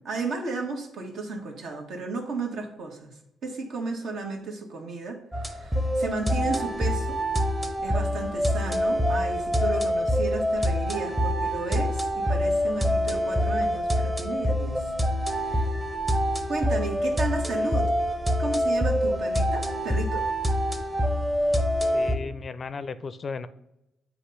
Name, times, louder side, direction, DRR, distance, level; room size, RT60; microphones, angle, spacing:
voice 1, 0.0-7.2 7.8-14.9 15.4-15.7 16.5-17.9 18.4-20.2, right 3 dB, 70° right, 2 dB, 1.3 m, -34 dB
sound 1, 5.3-22.1, equal, 15° right, 0.8 m, -25 dB
voice 2, 21.9-23.5, left 4 dB, 40° left, 13 dB, 0.4 m, -35 dB
8.0 x 2.9 x 5.7 m, 0.86 s
cardioid pair, 90°, 0 cm